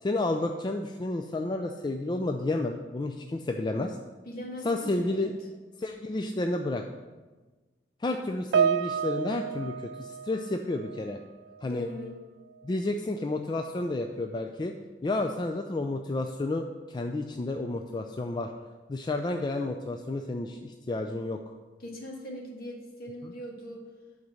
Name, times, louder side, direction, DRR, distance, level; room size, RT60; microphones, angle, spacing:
voice 1, 0.0-4.0 4.6-5.3 5.8-6.8 8.0-11.2 11.6-11.9 12.6-14.7 15.0-18.5 18.9-21.4 23.2-23.3, left 2 dB, 25° left, 4 dB, 0.4 m, -31 dB
voice 2, 4.3-5.3 11.6-12.1 21.8-23.8, equal, 60° left, 0 dB, 1.6 m, -40 dB
Piano, 8.5-11.2 11.4-11.8 12.6-12.7, right 7 dB, 90° right, 0.3 m, -30 dB
7.9 x 4.0 x 6.9 m, 1.3 s
head